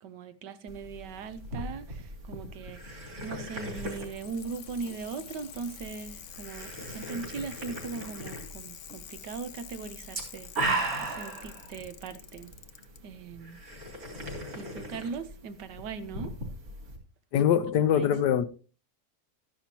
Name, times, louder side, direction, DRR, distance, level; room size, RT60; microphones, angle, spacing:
voice 1, 0.0-10.7 11.0-12.5 13.0-13.6 14.5-16.3 17.4-17.5 17.9-18.1, right 5 dB, 80° right, 1.5 m, -40 dB
sound 1, 0.7-17.0, right 2 dB, 55° right, 3.6 m, -39 dB
Bicycle, 3.4-13.0 14.1-14.2, left 9 dB, 60° left, 0.8 m, -48 dB
voice 2, 17.3-18.5, left 9 dB, 75° left, 1.2 m, -23 dB
13.0 x 10.5 x 2.9 m
omnidirectional pair, 1.9 m